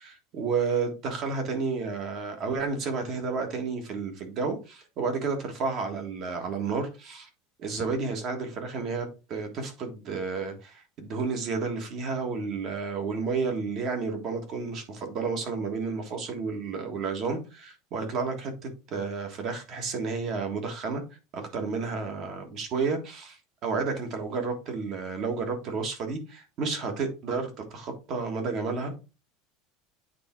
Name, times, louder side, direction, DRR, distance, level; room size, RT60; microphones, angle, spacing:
voice 1, 0.0-7.3 7.6-21.0 21.3-29.0, right 4 dB, 35° right, 1.6 m, -31 dB
8.4 x 3.5 x 4.4 m
cardioid pair, 175°, 0 cm